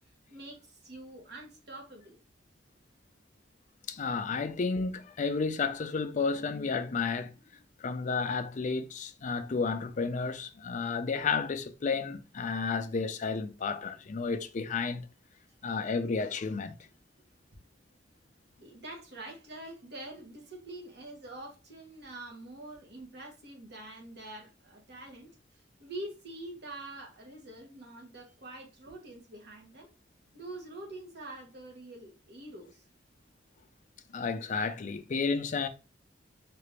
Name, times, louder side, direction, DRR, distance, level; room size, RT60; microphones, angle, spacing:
voice 1, 0.3-2.2 18.6-25.3 25.8-29.9 30.3-32.8, right 1 dB, 60° right, 1.3 m, -45 dB
voice 2, 3.9-7.3 7.8-15.1 15.6-16.8 34.1-35.7, left 4 dB, 40° left, 0.4 m, -32 dB
3.8 x 2.5 x 3.2 m
head